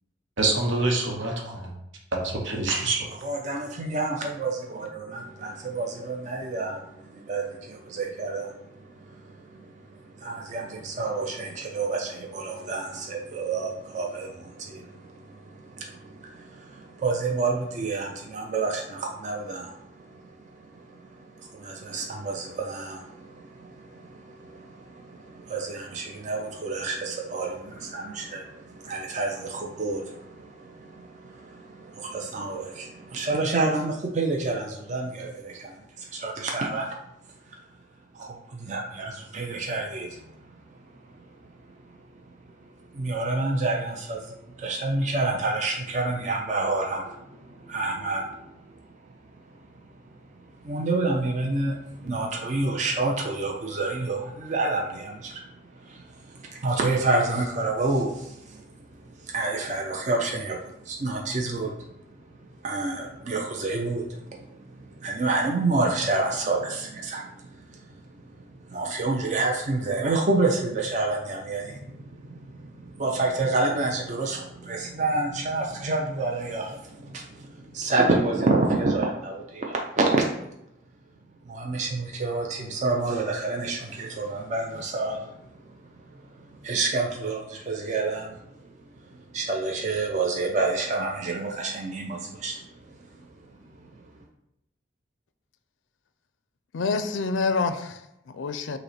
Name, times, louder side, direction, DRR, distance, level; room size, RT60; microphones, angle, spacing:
voice 1, 0.4-1.7 2.1-3.0, right 2 dB, 85° right, 1 dB, 0.8 m, -26 dB
voice 2, 3.2-37.0 37.5-37.6 38.1-41.4 41.7-48.8 49.2-49.7 50.4-62.2 62.6-80.2 81.5-94.0, right 3 dB, 40° right, 0 dB, 0.4 m, -29 dB
voice 3, 96.7-98.8, left 4 dB, 80° left, 11 dB, 0.4 m, -27 dB
5.3 x 2.1 x 4.1 m, 0.85 s
head